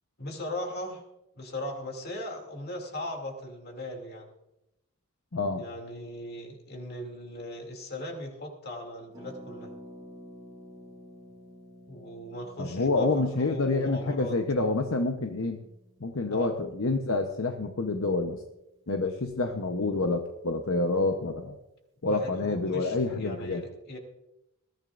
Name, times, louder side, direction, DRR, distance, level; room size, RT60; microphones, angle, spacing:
voice 1, 0.2-1.0 1.4-4.3 5.5-9.7 11.9-14.4 16.3-16.5 22.0-24.0, left 1 dB, 45° left, 2 dB, 2.7 m, -38 dB
voice 2, 5.3-5.6 12.6-15.6 16.0-18.4 18.9-21.6 22.0-23.6, left 3 dB, 70° left, 4 dB, 1.0 m, -28 dB
Harp, 9.1-18.8 19.0-19.1 19.3-19.6, equal, 20° right, 3.2 m, -52 dB
21.0 x 14.5 x 2.6 m, 0.89 s
head